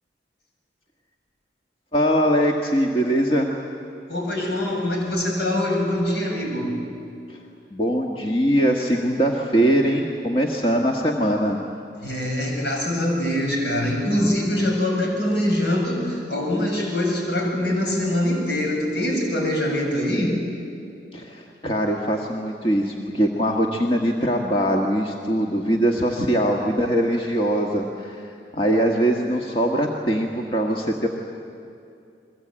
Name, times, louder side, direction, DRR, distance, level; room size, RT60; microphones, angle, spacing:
voice 1, 1.9-3.5 7.3-7.4 7.7-11.6 21.1-28.2 28.5-31.1, equal, 30° left, 0 dB, 1.6 m, -22 dB
voice 2, 4.1-6.7 12.0-20.4, left 1 dB, 65° left, 0 dB, 7.2 m, -23 dB
29.5 x 22.5 x 8.8 m, 2.5 s
head